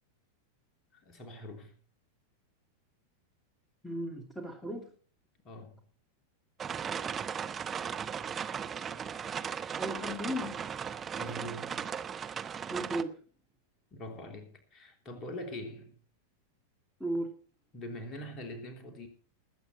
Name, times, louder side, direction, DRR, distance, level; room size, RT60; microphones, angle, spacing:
voice 1, 0.9-1.7 5.4-5.8 11.1-11.9 13.9-16.0 17.7-19.1, left 1 dB, 30° left, 3.2 m, -43 dB
voice 2, 3.8-4.9 9.8-10.6 12.7-13.1 17.0-17.3, equal, ahead, 2.6 m, -35 dB
sound 1, 6.6-13.0, right 7 dB, 20° right, 0.8 m, -37 dB
20.0 x 8.8 x 4.3 m
figure-of-eight pair, 90°, 0 cm